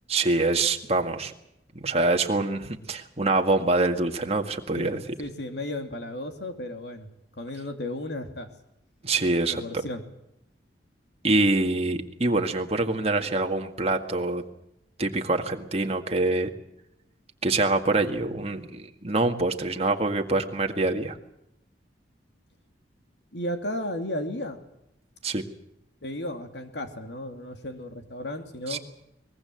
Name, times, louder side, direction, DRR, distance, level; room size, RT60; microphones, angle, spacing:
voice 1, 0.1-1.3 1.7-5.0 9.0-9.6 11.2-14.4 15.0-16.5 17.4-21.2 25.2-25.4 28.7-28.8, right 2 dB, 35° right, 4 dB, 1.9 m, -25 dB
voice 2, 4.7-8.5 9.5-10.0 23.3-24.6 26.0-28.8, left 1 dB, 65° left, 6 dB, 2.7 m, -34 dB
23.0 x 21.0 x 7.8 m, 0.81 s
head